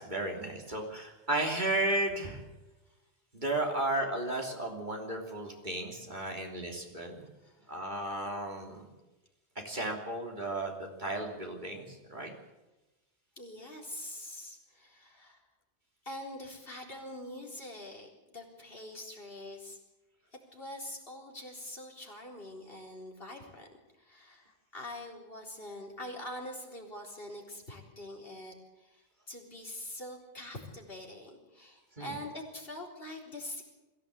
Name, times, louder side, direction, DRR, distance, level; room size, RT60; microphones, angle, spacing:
voice 1, 0.0-2.4 3.3-7.3 7.7-8.8 9.5-12.3 32.0-32.1, right 1 dB, 45° right, 1 dB, 3.4 m, -34 dB
voice 2, 7.4-7.7 13.4-15.4 16.0-19.8 20.5-23.7 24.0-33.6, left 1 dB, 60° left, -1 dB, 4.3 m, -44 dB
22.5 x 15.5 x 8.4 m, 1.0 s
omnidirectional pair, 1.1 m